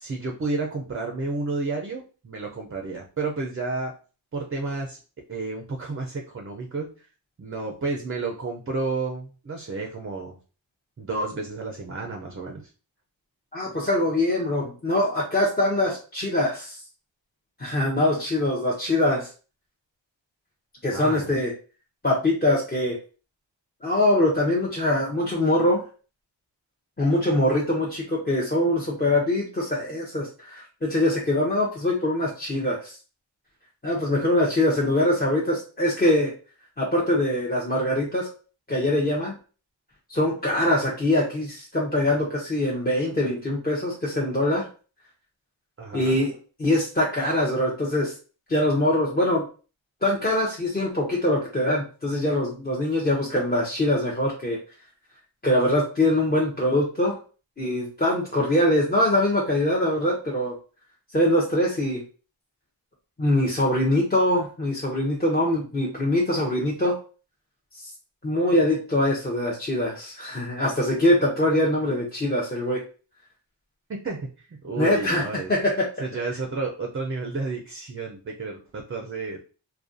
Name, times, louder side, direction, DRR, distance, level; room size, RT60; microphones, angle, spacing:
voice 1, 0.0-4.0 4.3-5.0 5.3-6.9 7.4-10.4 11.0-12.7 20.9-21.3 45.8-46.2 73.9-75.5 76.0-79.4, right 3 dB, 30° right, 2 dB, 0.5 m, -31 dB
voice 2, 13.5-16.8 17.6-19.3 20.8-21.5 22.0-23.0 23.8-25.8 27.0-33.0 33.8-36.3 36.8-38.3 38.7-39.3 40.1-44.7 45.9-46.3 46.6-48.1 48.5-49.4 50.0-54.6 55.4-57.2 57.6-60.5 61.1-62.0 63.2-66.9 68.2-72.8 74.8-75.2 75.5-75.9, left 1 dB, 20° left, -4 dB, 0.7 m, -23 dB
2.4 x 2.3 x 2.5 m, 0.36 s
cardioid pair, 50°, 46 cm